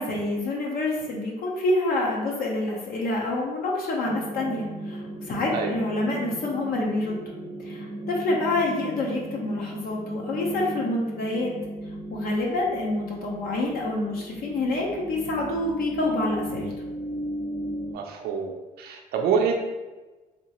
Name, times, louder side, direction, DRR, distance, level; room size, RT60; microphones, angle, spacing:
voice 1, 0.0-7.2 7.6-11.5 12.1-16.7, left 2 dB, 60° left, -2 dB, 0.8 m, -27 dB
sound 1, 4.0-17.9, right 1 dB, 25° left, 1.0 m, -36 dB
voice 2, 17.8-19.6, right 6 dB, 65° right, 2 dB, 0.5 m, -26 dB
3.5 x 2.8 x 2.9 m, 1.2 s
cardioid pair, 110°, 17 cm